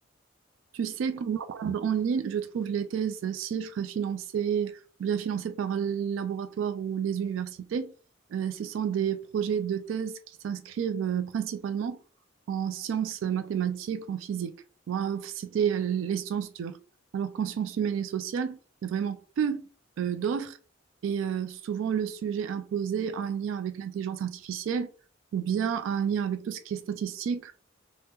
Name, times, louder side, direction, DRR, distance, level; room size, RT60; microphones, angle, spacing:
voice 1, 0.7-7.9 8.3-10.2 10.4-12.0 12.5-14.5 14.9-16.8 17.1-19.6 20.0-20.6 21.0-24.9 25.3-27.5, right 8 dB, 85° right, 0.3 m, -30 dB
3.5 x 2.0 x 2.8 m
head